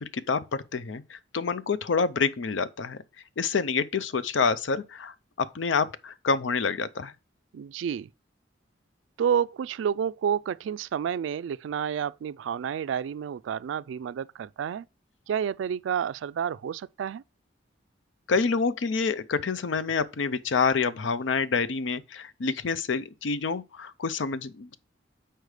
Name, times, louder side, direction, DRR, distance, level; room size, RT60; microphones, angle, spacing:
voice 1, 0.0-3.0 3.4-7.1 18.3-24.8, left 5 dB, 85° left, 0.5 m, -27 dB
voice 2, 7.5-8.1 9.2-14.9 15.3-17.2, right 8 dB, 80° right, 0.3 m, -30 dB
6.5 x 4.5 x 4.8 m
head